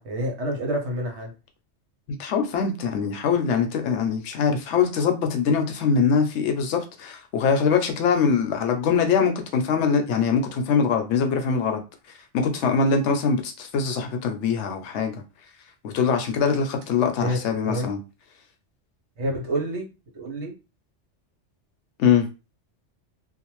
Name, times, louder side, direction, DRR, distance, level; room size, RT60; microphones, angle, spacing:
voice 1, 0.0-1.3 17.2-17.4 17.7-17.9 19.2-19.9 20.1-20.5, right 1 dB, 70° right, 1.1 m, -28 dB
voice 2, 2.2-11.8 12.3-15.2 15.8-18.0 22.0-22.3, left 6 dB, 75° left, 0.9 m, -23 dB
2.5 x 2.1 x 3.0 m
omnidirectional pair, 1.2 m